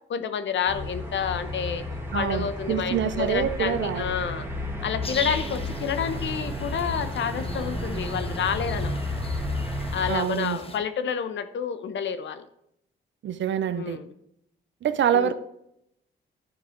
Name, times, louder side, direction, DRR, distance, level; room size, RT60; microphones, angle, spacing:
voice 1, 0.1-1.8 2.1-4.5 4.8-9.0 9.9-12.4 13.8-14.1 15.1-15.3, left 7 dB, 65° left, 11 dB, 0.8 m, -29 dB
sound 1, 0.7-10.1, left 1 dB, 10° right, 2.0 m, -32 dB
voice 2, 2.1-4.1 10.1-10.6 13.2-14.0 14.8-15.3, right 9 dB, 65° right, 12 dB, 0.7 m, -26 dB
sound 2, 5.0-10.8, left 3 dB, 30° left, 1.0 m, -40 dB
11.5 x 4.8 x 3.8 m, 0.78 s
cardioid pair, 65°, 20 cm